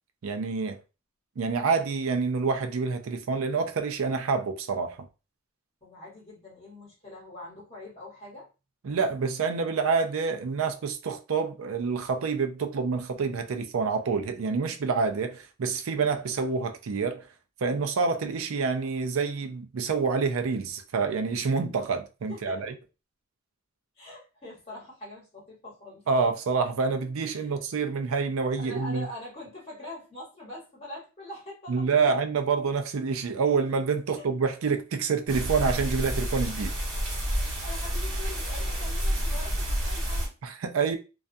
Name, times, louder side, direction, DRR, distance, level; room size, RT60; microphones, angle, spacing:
voice 1, 0.2-0.8 1.4-5.0 8.8-17.3 17.6-22.7 26.1-29.1 31.7-36.7 40.4-41.0, right 5 dB, 70° right, 0.4 m, -27 dB
voice 2, 5.8-8.5 22.3-22.6 24.0-26.3 27.2-27.6 28.6-32.2 34.1-34.3 37.2-40.3, left 1 dB, 30° left, 1.1 m, -44 dB
sound 1, 35.3-40.3, equal, 40° right, 1.1 m, -29 dB
2.4 x 2.2 x 2.6 m
head